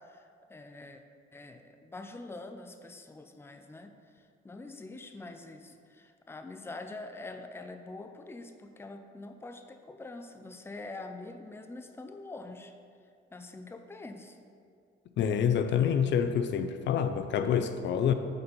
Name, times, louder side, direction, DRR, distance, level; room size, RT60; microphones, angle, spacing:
voice 1, 0.1-1.0 1.3-3.9 4.4-12.7 13.3-14.4, left 2 dB, 10° left, 6 dB, 0.5 m, -45 dB
voice 2, 15.2-18.1, left 8 dB, 65° left, 9 dB, 0.4 m, -27 dB
6.7 x 4.3 x 5.4 m, 2.3 s
cardioid pair, 90°, 20 cm